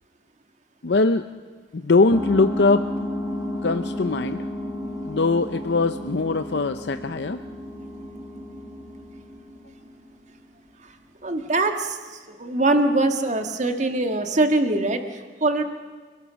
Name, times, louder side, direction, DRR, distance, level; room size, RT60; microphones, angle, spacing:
voice 1, 0.8-1.3 1.7-2.9 3.6-4.5 5.1-7.4, left 3 dB, 60° left, 9 dB, 0.6 m, -21 dB
sound 1, 2.1-10.2, left 1 dB, 15° right, 4.3 m, -32 dB
voice 2, 11.2-15.6, right 2 dB, 40° right, 6 dB, 1.8 m, -23 dB
29.5 x 18.5 x 6.4 m, 1.5 s
head